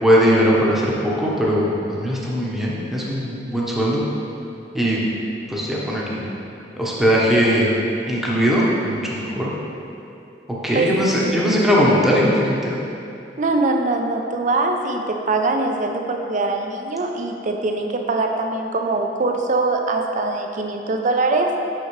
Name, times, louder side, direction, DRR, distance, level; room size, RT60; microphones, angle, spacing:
voice 1, 0.0-4.0 4.7-5.0 5.5-6.3 6.8-7.7 8.1-9.5 10.6-12.7, equal, ahead, -6 dB, 0.9 m, -19 dB
voice 2, 11.2-11.5 13.4-21.5, right 3 dB, 45° right, 3 dB, 0.5 m, -22 dB
6.4 x 6.1 x 3.1 m, 2.7 s
head